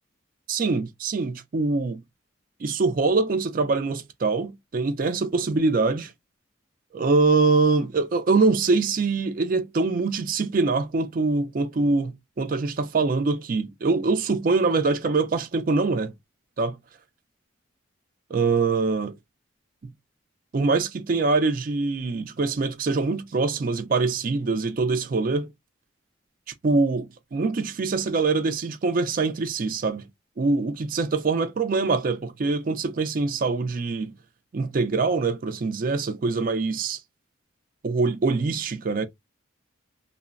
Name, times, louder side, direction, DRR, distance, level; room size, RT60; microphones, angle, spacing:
voice 1, 0.5-2.0 2.6-6.1 6.9-16.1 16.6-16.8 18.3-19.1 19.8-19.9 20.5-25.5 26.6-30.1 30.4-34.1 34.5-37.0 37.8-39.1, right 3 dB, 45° right, 0.4 m, -24 dB
3.1 x 2.0 x 2.4 m
head